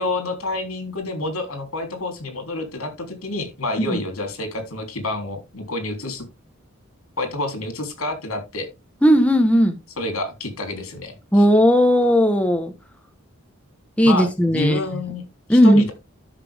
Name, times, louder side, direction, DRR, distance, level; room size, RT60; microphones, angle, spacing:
voice 1, 0.0-6.2 7.2-8.7 10.0-11.1 14.0-15.9, left 2 dB, 85° left, 3.4 m, -28 dB
voice 2, 9.0-9.8 11.3-12.7 14.0-14.8 15.5-15.8, equal, 5° left, 1.1 m, -16 dB
12.0 x 6.0 x 3.5 m
head